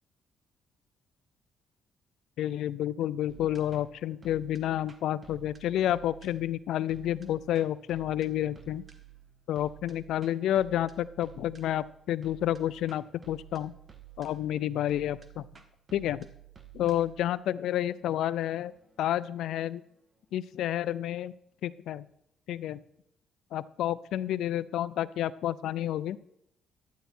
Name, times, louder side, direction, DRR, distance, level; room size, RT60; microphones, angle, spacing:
voice 1, 2.4-8.8 9.5-13.7 14.2-15.4 15.9-16.3 16.7-18.7 19.0-19.8 20.3-21.3 21.6-22.1 22.5-22.8 23.5-26.2, left 12 dB, 80° left, 18 dB, 0.4 m, -30 dB
sound 1, 3.3-20.4, right 11 dB, 35° right, 1.5 m, -53 dB
12.0 x 9.2 x 4.4 m, 0.75 s
cardioid pair, 90°, 0 cm